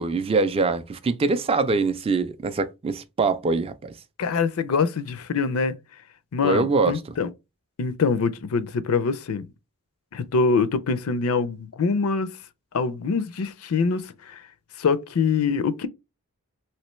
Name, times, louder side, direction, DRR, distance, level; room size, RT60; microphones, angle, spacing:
voice 1, 0.0-3.9 6.4-7.0, right 3 dB, 25° right, 0.3 m, -23 dB
voice 2, 4.2-5.8 6.3-7.3 7.8-9.4 10.1-12.3 12.7-14.4 14.8-15.9, left 5 dB, 75° left, 0.5 m, -24 dB
3.2 x 2.9 x 3.0 m
head